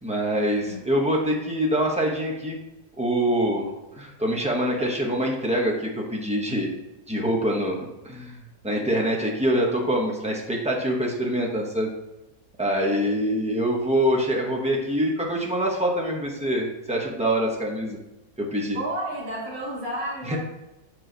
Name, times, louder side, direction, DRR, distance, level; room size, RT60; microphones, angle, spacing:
voice 1, 0.0-2.6 3.0-3.7 4.0-6.7 7.1-8.4 8.6-11.9 12.6-18.0 18.5-18.8 20.3-20.4, equal, 5° right, -1 dB, 0.8 m, -25 dB
voice 2, 18.7-20.4, right 1 dB, 70° right, -3 dB, 2.4 m, -31 dB
7.0 x 4.9 x 3.9 m, 0.95 s
omnidirectional pair, 1.5 m